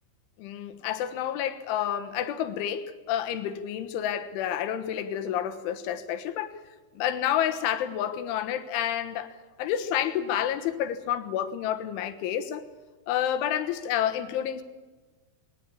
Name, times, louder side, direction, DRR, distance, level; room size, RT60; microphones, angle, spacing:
voice 1, 0.4-6.6 7.0-12.7 13.1-14.6, left 10 dB, 85° left, 3.8 m, -29 dB
21.0 x 19.5 x 8.5 m
omnidirectional pair, 5.4 m